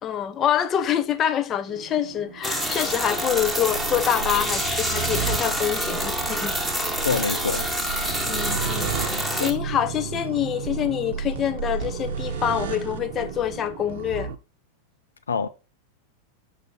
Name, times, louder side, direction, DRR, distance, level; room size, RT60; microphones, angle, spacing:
voice 1, 0.0-6.6 8.3-8.9 9.3-14.3, left 10 dB, 25° left, 0.9 m, -26 dB
sound 1, 1.7-14.3, right 7 dB, 55° right, 0.9 m, -33 dB
sound 2, 2.4-9.5, equal, ahead, 1.4 m, -27 dB
voice 2, 7.0-7.7 9.4-9.6 15.3-15.5, left 5 dB, 70° left, 0.5 m, -25 dB
6.6 x 5.7 x 3.9 m
figure-of-eight pair, 90°, 0 cm